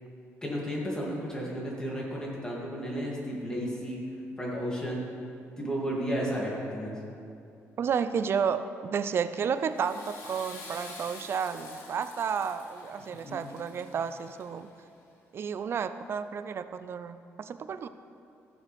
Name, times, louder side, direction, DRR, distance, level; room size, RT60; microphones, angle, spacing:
voice 1, 0.4-4.0 4.4-5.0 5.6-6.9 13.2-13.4, equal, 15° left, -4 dB, 2.7 m, -33 dB
voice 2, 7.8-14.7 15.3-17.9, right 6 dB, 50° right, 12 dB, 0.4 m, -31 dB
Water / Toilet flush, 9.5-14.8, left 2 dB, 75° left, 2.5 m, -48 dB
15.0 x 7.1 x 3.5 m, 2.6 s
cardioid pair, 100°, 5 cm